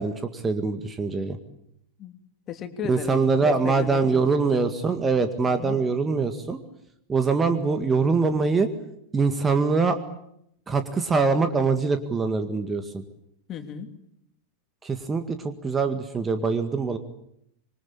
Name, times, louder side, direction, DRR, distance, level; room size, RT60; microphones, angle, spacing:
voice 1, 0.0-1.4 2.9-6.6 7.1-8.7 9.1-10.0 10.7-13.0 14.8-17.0, right 4 dB, 15° right, 9 dB, 1.9 m, -23 dB
voice 2, 2.5-4.7 5.4-5.8 13.5-13.9, left 9 dB, 30° left, 7 dB, 3.1 m, -35 dB
26.5 x 23.0 x 8.7 m, 0.76 s
figure-of-eight pair, 90°, 0 cm